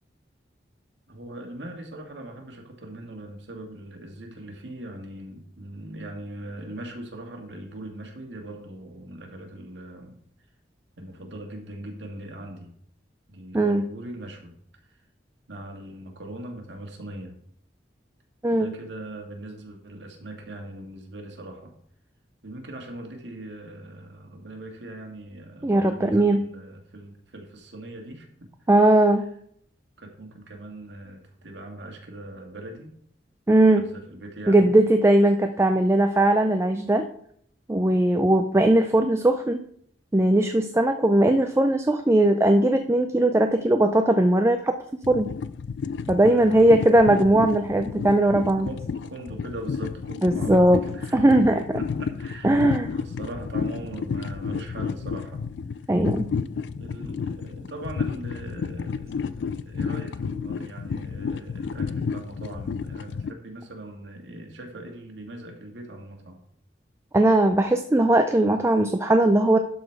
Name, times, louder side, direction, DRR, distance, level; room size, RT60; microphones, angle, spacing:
voice 1, 1.1-10.2 11.0-12.7 13.3-15.0 15.5-17.4 18.5-21.7 22.4-28.5 30.0-32.9 33.8-34.8 46.2-46.8 48.6-51.2 51.7-55.4 56.7-66.4, right 1 dB, 80° right, 2 dB, 1.8 m, -40 dB
voice 2, 25.6-26.4 28.7-29.3 33.5-33.8 34.5-37.1 37.7-39.6 40.1-44.7 45.1-45.3 46.1-48.7 50.2-50.8 51.1-51.8 52.4-52.9 55.9-56.3 67.1-69.6, right 1 dB, 15° right, 6 dB, 0.4 m, -19 dB
sound 1, 45.0-63.3, left 5 dB, 70° left, 0.3 m, -31 dB
12.0 x 4.1 x 4.6 m, 0.66 s
head